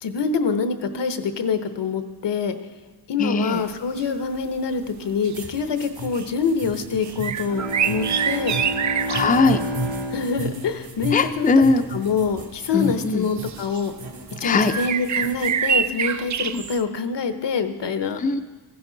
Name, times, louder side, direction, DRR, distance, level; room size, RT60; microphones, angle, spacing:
voice 1, 0.0-2.6 3.1-8.6 10.1-11.5 11.9-13.9 14.4-18.2, left 5 dB, 75° left, 9 dB, 0.9 m, -25 dB
voice 2, 3.2-3.7 9.1-9.6 11.1-11.9 12.7-13.3 14.4-14.7 16.5-16.6 18.2-18.4, left 3 dB, 20° left, 7 dB, 0.5 m, -20 dB
sound 1, 4.0-4.1 4.4-4.6 5.0-5.7 6.1-6.3 7.0-9.4 11.5-11.6 12.6-12.7 13.3-13.9 14.7-16.8, right 8 dB, 45° right, 0.4 m, -26 dB
sound 2, 5.3-15.6, right 1 dB, 60° right, 1.7 m, -35 dB
Bowed string instrument, 7.3-11.9, right 1 dB, 90° right, 1.8 m, -31 dB
14.5 x 11.0 x 3.9 m, 1.3 s
wide cardioid pair, 95°, 42 cm